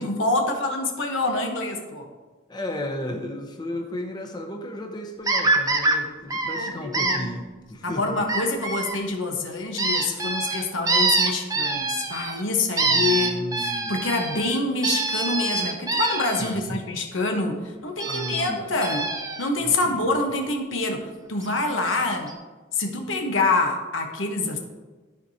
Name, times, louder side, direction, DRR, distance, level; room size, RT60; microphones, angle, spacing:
voice 1, 0.0-2.1 6.6-7.3 7.8-19.1 19.4-22.3 22.7-24.6, left 2 dB, 80° left, 3 dB, 1.0 m, -26 dB
voice 2, 2.5-8.2 12.8-13.9 16.4-16.8 18.0-18.7 19.6-20.0, left 1 dB, 20° left, 2 dB, 0.8 m, -34 dB
sound 1, 5.3-6.0 6.3-7.2 8.3-9.0 9.8-12.4 12.8-16.5 18.0-18.5 18.8-19.5 21.5-21.6 21.9-22.0 22.3-22.4, right 3 dB, 20° right, 0.6 m, -25 dB
13.0 x 4.7 x 2.8 m, 1.3 s
head